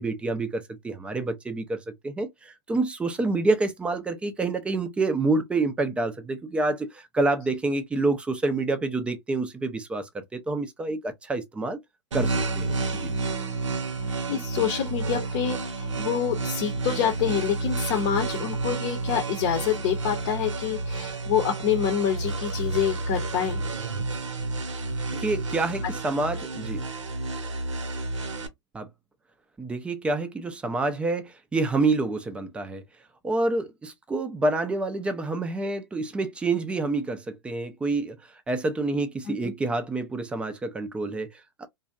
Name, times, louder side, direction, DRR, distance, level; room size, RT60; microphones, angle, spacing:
voice 1, 0.0-11.8 12.1-13.1 25.1-26.8 28.7-28.9 29.6-32.8 33.2-38.2 38.5-41.7, right 3 dB, 5° right, 0.4 m, -28 dB
sound 1, 12.1-28.5, right 3 dB, 85° right, 0.8 m, -30 dB
voice 2, 13.7-23.6 39.3-39.5, left 9 dB, 45° left, 0.7 m, -27 dB
2.6 x 2.1 x 2.3 m
hypercardioid pair, 130°, 16 cm